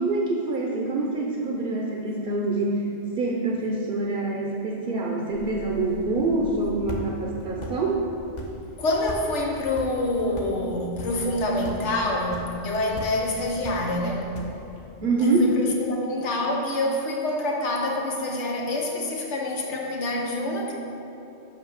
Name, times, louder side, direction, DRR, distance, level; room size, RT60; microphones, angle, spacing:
voice 1, 0.0-2.8 3.2-8.0 15.0-15.6, right 2 dB, 55° right, -1 dB, 0.9 m, -25 dB
sound 1, 5.3-14.9, equal, 45° left, 0.9 m, -40 dB
voice 2, 8.8-14.3 15.2-20.7, left 1 dB, 90° left, 0 dB, 1.4 m, -27 dB
5.8 x 5.5 x 6.4 m, 2.9 s
omnidirectional pair, 1.1 m